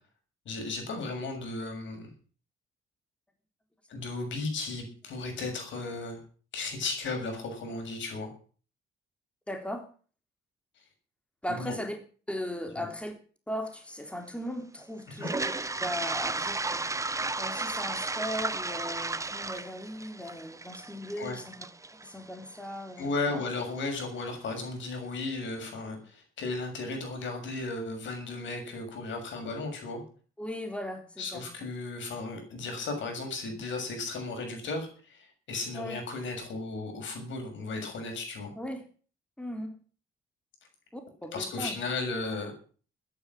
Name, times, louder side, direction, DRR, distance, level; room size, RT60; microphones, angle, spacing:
voice 1, 0.5-2.1 3.9-6.2 6.5-8.3 11.5-11.8 12.8-12.9 15.1-15.3 21.2-21.4 23.0-30.0 31.2-38.5 41.3-42.5, left 3 dB, 70° left, 4 dB, 6.9 m, -35 dB
voice 2, 9.5-9.8 11.4-12.0 12.3-13.1 13.5-15.5 15.8-21.6 22.0-23.4 30.4-31.4 35.7-36.0 38.6-38.8 39.4-39.8 40.9-41.8, left 1 dB, 5° left, 5 dB, 3.5 m, -38 dB
Toilet flush, 15.1-23.1, right 3 dB, 15° right, 1.0 m, -34 dB
14.0 x 10.5 x 7.5 m, 0.41 s
cardioid pair, 90°, 20 cm